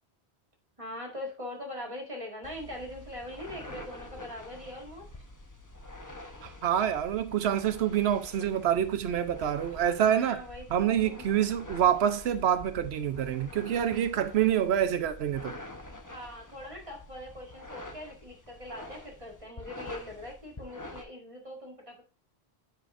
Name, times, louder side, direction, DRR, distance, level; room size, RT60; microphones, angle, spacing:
voice 1, 0.8-5.1 10.0-11.3 16.1-22.0, left 1 dB, 30° right, 1.8 m, -42 dB
sound 1, 2.4-21.0, left 1 dB, 20° left, 0.9 m, -47 dB
voice 2, 6.4-10.4 10.7-15.6, right 10 dB, 80° right, 1.0 m, -27 dB
10.0 x 5.7 x 2.5 m
omnidirectional pair, 1.1 m